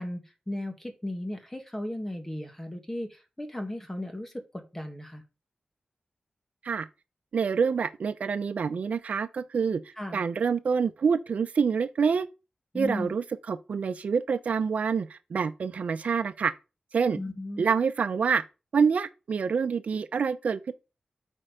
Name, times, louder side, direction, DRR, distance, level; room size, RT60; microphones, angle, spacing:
voice 1, 0.0-5.2 10.0-10.2 12.7-13.1 17.1-17.7, left 1 dB, 15° left, 1.8 m, -36 dB
voice 2, 7.3-9.8 10.1-12.3 12.7-16.5 16.9-17.2 17.6-18.4 18.7-20.7, right 6 dB, 80° right, 0.6 m, -26 dB
8.7 x 4.5 x 5.0 m
wide cardioid pair, 100°, 2 cm